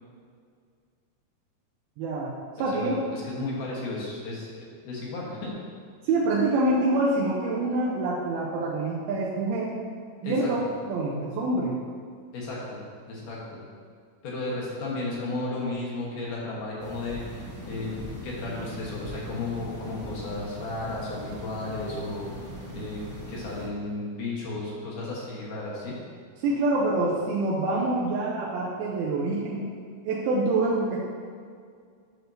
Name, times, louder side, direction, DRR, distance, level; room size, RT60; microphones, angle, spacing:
voice 1, 2.0-3.0 6.0-9.7 10.2-10.6 10.9-11.7 26.4-29.7 30.0-31.0, right 2 dB, 80° right, -5 dB, 2.5 m, -26 dB
voice 2, 2.6-5.5 10.2-10.5 12.3-12.8 13.1-13.6 14.2-22.3 22.7-26.0, left 2 dB, 65° left, -5 dB, 2.6 m, -34 dB
sound 1, 16.8-23.7, equal, 50° right, 1.6 m, -40 dB
9.1 x 6.0 x 2.7 m, 2.1 s
omnidirectional pair, 4.5 m